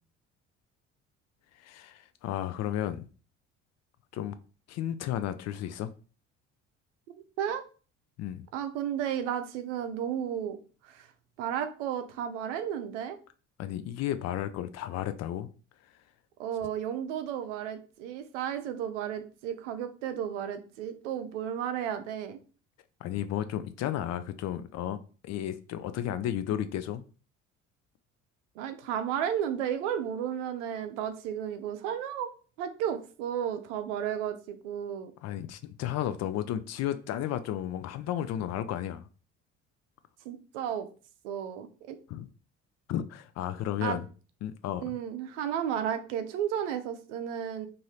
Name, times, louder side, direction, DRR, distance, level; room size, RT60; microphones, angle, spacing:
voice 1, 1.6-3.1 4.1-4.4 4.7-5.9 8.2-8.4 13.6-15.5 23.0-27.0 35.2-39.1 42.1-42.3 42.9-44.1 44.4-44.8, left 11 dB, 45° left, 0.4 m, -33 dB
voice 2, 8.5-10.6 10.8-11.1 11.4-13.2 16.4-22.4 28.6-32.3 32.6-35.1 40.3-40.9 41.2-42.0 43.8-44.0 44.8-47.7, right 9 dB, 75° right, 0.6 m, -33 dB
2.7 x 2.6 x 3.2 m
hypercardioid pair, 55°, 37 cm